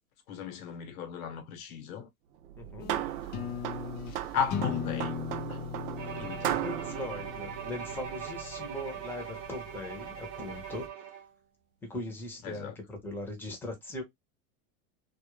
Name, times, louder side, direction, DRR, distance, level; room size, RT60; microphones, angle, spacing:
voice 1, 0.3-2.1 4.3-5.2 5.5-5.6 6.1-6.6 12.4-12.7, left 7 dB, 80° left, 1.0 m, -35 dB
sound 1, 2.4-8.3, right 12 dB, 90° right, 0.5 m, -37 dB
voice 2, 2.6-2.9 6.5-10.9 11.8-14.0, left 1 dB, 5° left, 0.7 m, -40 dB
sound 2, 2.8-10.9, left 7 dB, 25° left, 0.3 m, -40 dB
Bowed string instrument, 6.0-11.3, right 9 dB, 45° right, 0.7 m, -41 dB
2.4 x 2.0 x 3.0 m
supercardioid pair, 135°, 42 cm